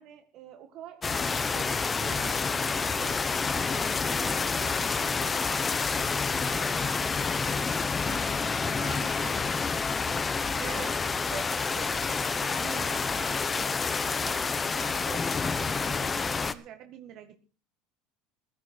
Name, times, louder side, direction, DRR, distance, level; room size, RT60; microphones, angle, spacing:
voice 1, 0.0-7.7 8.0-10.2 10.5-17.4, right 9 dB, 50° right, 7 dB, 1.9 m, -46 dB
sound 1, 1.0-16.5, left 4 dB, 20° left, 1.0 m, -28 dB
15.5 x 13.0 x 4.6 m, 0.34 s
supercardioid pair, 125°, 0 cm